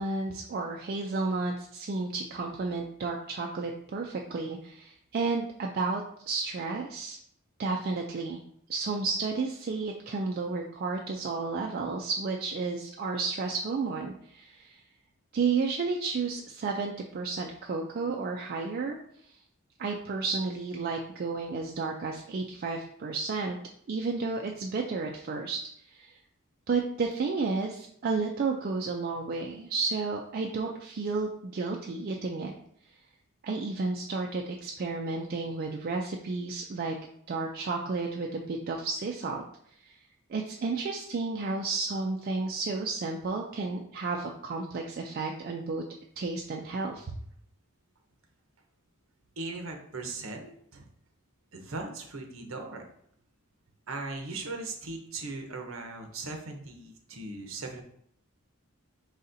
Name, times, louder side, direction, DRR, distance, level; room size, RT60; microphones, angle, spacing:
voice 1, 0.0-7.2 7.6-8.4 8.7-14.8 15.3-19.0 19.8-23.6 23.9-25.6 25.9-26.1 26.7-32.5 33.4-37.0 37.3-39.4 39.9-40.0 40.3-45.8 46.2-47.1, right 4 dB, 45° right, 1 dB, 0.3 m, -32 dB
voice 2, 49.4-50.9 51.5-52.8 53.9-57.8, right 3 dB, 65° right, 3 dB, 0.8 m, -38 dB
4.8 x 4.0 x 2.6 m, 0.68 s
head